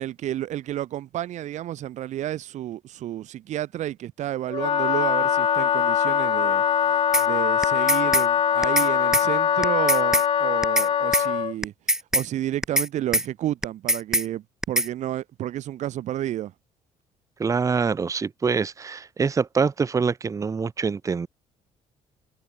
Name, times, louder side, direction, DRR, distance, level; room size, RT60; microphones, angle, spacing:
voice 1, 0.0-6.6 7.2-11.7 12.1-16.5, right 12 dB, 65° right, 2.5 m, -31 dB
Wind instrument woodwind instrument, 4.5-11.5, left 8 dB, 45° left, 1.0 m, -22 dB
sound 1, 7.1-7.3 7.6-8.3 8.6-8.9 9.1-9.3 9.6-10.3 10.6-10.9 11.1-11.3 11.6-12.3 12.6-12.9 13.1-13.3 13.6-14.3 14.6-14.9, right 1 dB, 5° right, 1.1 m, -22 dB
voice 2, 17.4-21.3, right 5 dB, 25° right, 0.7 m, -25 dB
cardioid pair, 100°, 13 cm